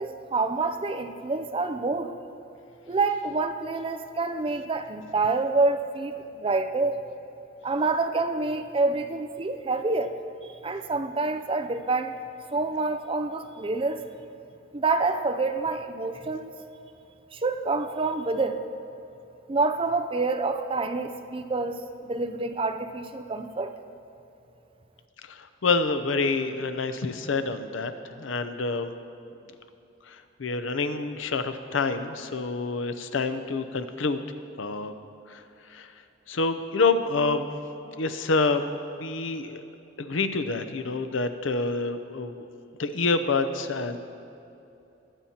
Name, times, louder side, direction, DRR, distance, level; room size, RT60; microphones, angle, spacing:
voice 1, 0.0-2.1 2.9-7.0 7.6-10.2 10.6-12.2 12.5-14.1 14.7-16.6 17.3-18.7 19.5-23.7, right 3 dB, 30° right, 8 dB, 0.5 m, -27 dB
voice 2, 25.3-28.9 30.1-34.2 34.6-35.0 35.3-35.4 35.7-35.9 36.3-37.5 37.8-38.6 39.0-39.6 40.0-42.4 42.8-44.0, left 3 dB, 80° left, 9 dB, 0.6 m, -27 dB
21.5 x 8.7 x 2.9 m, 2.7 s
head